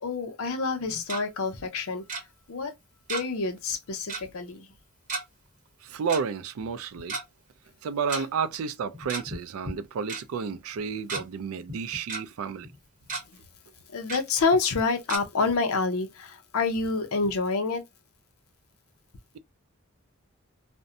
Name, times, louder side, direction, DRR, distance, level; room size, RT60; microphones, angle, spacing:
voice 1, 0.0-2.2 2.5-2.7 3.1-4.7 8.1-8.2 13.9-17.8, left 4 dB, 75° left, 0.6 m, -28 dB
Tick-tock, 0.8-1.2 2.1-2.2 3.1-3.4 3.7-3.8 4.1-4.3 5.1-5.2 6.1-6.2 7.0-7.2 8.1-8.2 8.9-9.4 9.7-9.8 10.1-10.2 10.8-11.2 11.7-12.2 12.6-12.7 13.0-13.2 14.1-14.2 15.1-15.2, right 3 dB, 35° right, 0.9 m, -33 dB
voice 2, 5.8-7.2 7.8-12.7, right 6 dB, 75° right, 0.4 m, -31 dB
2.5 x 2.1 x 2.6 m
head